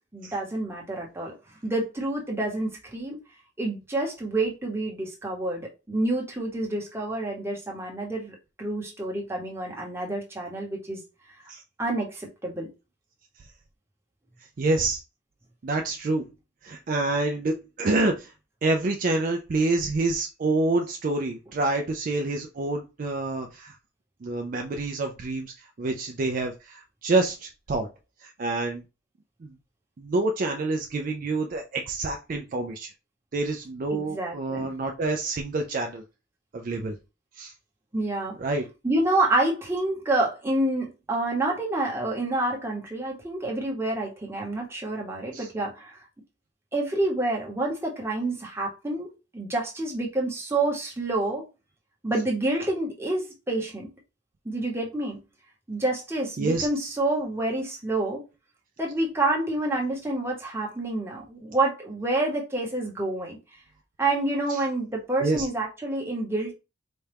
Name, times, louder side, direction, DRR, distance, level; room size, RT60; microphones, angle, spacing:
voice 1, 0.1-1.3 1.6-3.2 3.6-11.0 11.8-12.7 33.9-34.7 37.9-38.4 38.8-46.0 46.7-51.4 52.0-53.9 54.4-55.2 55.7-58.2 58.8-63.4 64.0-66.5, right 2 dB, 15° right, 1.0 m, -28 dB
voice 2, 14.6-15.0 15.6-16.2 16.6-18.3 18.6-23.7 24.2-27.9 28.2-28.8 29.4-29.5 30.0-32.9 33.3-36.0 36.5-37.0 37.4-37.5 38.4-38.6 45.3-45.5 56.4-57.0 64.5-64.6 65.2-65.5, right 2 dB, 45° right, 0.4 m, -27 dB
4.2 x 2.3 x 3.3 m
head